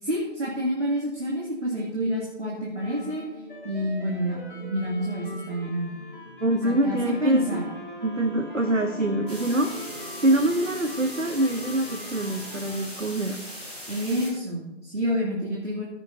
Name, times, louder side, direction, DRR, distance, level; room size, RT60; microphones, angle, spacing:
voice 1, 0.0-3.2 3.6-5.9 6.6-7.6 13.9-15.8, equal, 65° right, -4 dB, 2.7 m, -28 dB
sound 1, 2.8-12.9, left 2 dB, 45° left, 3.2 m, -43 dB
voice 2, 6.4-7.6 8.0-9.7 10.2-13.4, right 1 dB, 85° right, 6 dB, 1.1 m, -24 dB
sound 2, 7.0-10.9, right 2 dB, 35° right, 1.9 m, -43 dB
sound 3, 9.3-14.3, equal, 5° right, 2.5 m, -39 dB
15.5 x 9.5 x 2.7 m, 0.98 s
figure-of-eight pair, 170°, 37 cm